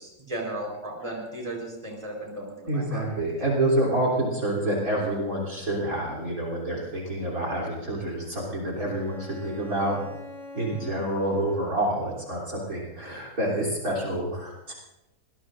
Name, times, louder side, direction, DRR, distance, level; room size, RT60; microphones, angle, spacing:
voice 1, 0.0-3.2 10.7-10.8, right 1 dB, 20° right, 0 dB, 4.2 m, -36 dB
voice 2, 2.7-10.0 10.5-14.7, right 1 dB, 50° right, -2 dB, 3.7 m, -28 dB
Bowed string instrument, 8.8-12.3, left 3 dB, ahead, 4.5 m, -44 dB
24.5 x 19.5 x 2.6 m, 0.94 s
omnidirectional pair, 1.9 m